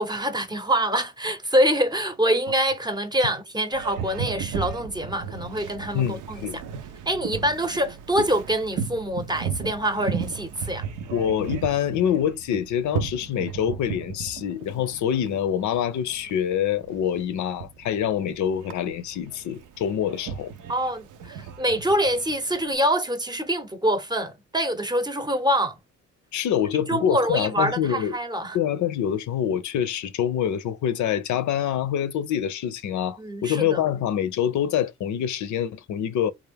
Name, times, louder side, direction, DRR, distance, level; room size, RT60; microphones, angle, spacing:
voice 1, 0.0-6.4 7.1-10.9 20.7-25.8 26.9-28.6 33.2-33.8, right 1 dB, 15° right, 0.7 m, -25 dB
Boat Water vehicle, 3.7-22.7, right 7 dB, 85° right, 0.7 m, -35 dB
voice 2, 5.9-6.6 11.1-20.5 26.3-28.2 28.5-36.3, left 9 dB, 70° left, 0.6 m, -25 dB
3.6 x 2.4 x 3.4 m
cardioid pair, 90°, 30 cm